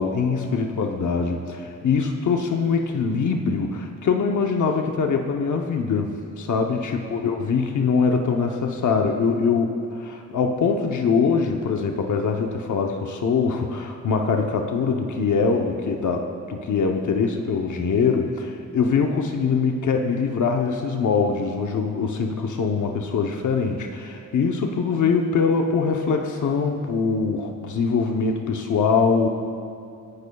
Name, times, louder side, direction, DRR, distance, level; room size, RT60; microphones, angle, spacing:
voice 1, 0.0-29.3, left 5 dB, 90° left, 2 dB, 0.8 m, -23 dB
25.0 x 11.5 x 2.3 m, 2.5 s
wide cardioid pair, 145°, 29 cm